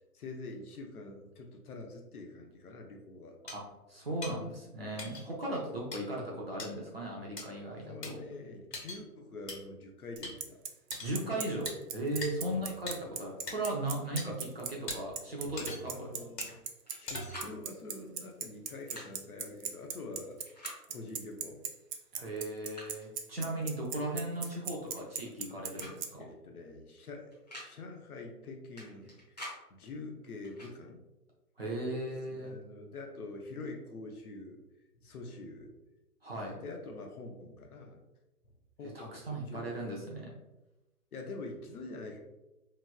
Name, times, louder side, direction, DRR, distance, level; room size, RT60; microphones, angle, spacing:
voice 1, 0.1-3.4 5.7-5.9 7.7-10.6 12.4-12.7 15.9-16.6 17.0-20.4 20.9-21.6 26.2-27.3 27.6-29.4 29.7-31.0 32.3-34.6 34.9-35.7 36.4-38.0 38.8-40.1 41.1-42.2, left 2 dB, 65° left, 2 dB, 0.7 m, -45 dB
sound 1, 3.5-3.6 4.2-4.3 5.0-5.2 5.9-6.0 6.6-6.7 7.4-7.5 8.0-8.1 8.7-9.0 9.5-9.6 10.2-10.3 10.9-11.2 11.7-11.8 12.2-12.3 12.9-13.0 13.5-13.6 14.2-14.3 14.9-15.0 15.6-16.0 16.4-16.5 17.1-17.5, left 2 dB, 90° left, 1.2 m, -40 dB
voice 2, 3.9-8.2 11.0-16.1 22.1-26.2 31.6-32.5 36.2-36.6 38.9-40.3, right 1 dB, 40° right, -3 dB, 0.5 m, -37 dB
Bicycle, 10.2-26.1, right 8 dB, 85° right, 0.6 m, -37 dB
sound 2, 16.4-17.0 17.3-17.5 18.7-19.1 20.4-20.8 21.9-22.0 22.4-23.1 24.4-24.6 24.9-25.5 25.8-26.0 26.2-26.3 27.3-27.7 28.8-29.6 30.4-30.7, left 1 dB, 25° left, 0.6 m, -47 dB
3.0 x 2.6 x 2.2 m, 0.99 s
hypercardioid pair, 165°, 47 cm